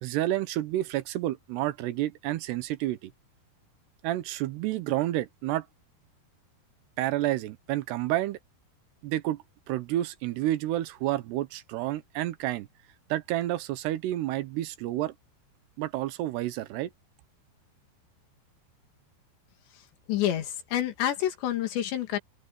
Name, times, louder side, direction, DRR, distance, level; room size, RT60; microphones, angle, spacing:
voice 1, 0.0-3.1 4.0-5.7 7.0-8.4 9.0-12.7 13.1-15.1 15.8-16.9, right 14 dB, 80° right, 3.0 m, -30 dB
voice 2, 19.7-22.2, left 11 dB, 90° left, 4.5 m, -29 dB
open air
omnidirectional pair, 4.9 m